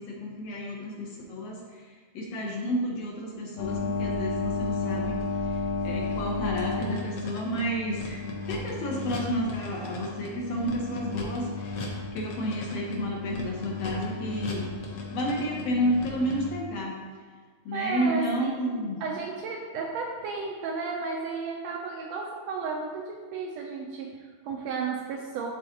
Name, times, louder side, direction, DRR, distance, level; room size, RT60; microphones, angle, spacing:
voice 1, 0.0-5.2 5.4-17.0 17.6-19.0, equal, 70° left, -2 dB, 1.7 m, -31 dB
sound 1, 3.6-16.5, left 3 dB, 90° left, 1.0 m, -33 dB
voice 2, 17.7-18.5 19.0-25.5, right 5 dB, 80° right, 0 dB, 1.6 m, -33 dB
11.5 x 3.9 x 2.8 m, 1.6 s
omnidirectional pair, 3.4 m